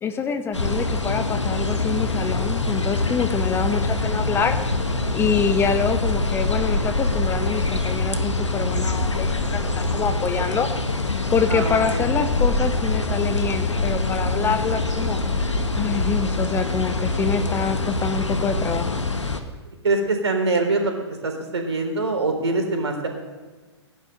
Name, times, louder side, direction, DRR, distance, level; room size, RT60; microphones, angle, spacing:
voice 1, 0.0-4.6 5.1-10.7 11.3-15.2 15.8-18.9, left 6 dB, 15° left, 8 dB, 0.9 m, -26 dB
sound 1, 0.5-19.4, left 2 dB, 85° left, 1.5 m, -24 dB
voice 2, 11.5-12.0 19.8-20.9 21.2-23.1, right 3 dB, 70° right, 3 dB, 3.7 m, -23 dB
18.5 x 10.5 x 6.6 m, 1.3 s
figure-of-eight pair, 115°, 15 cm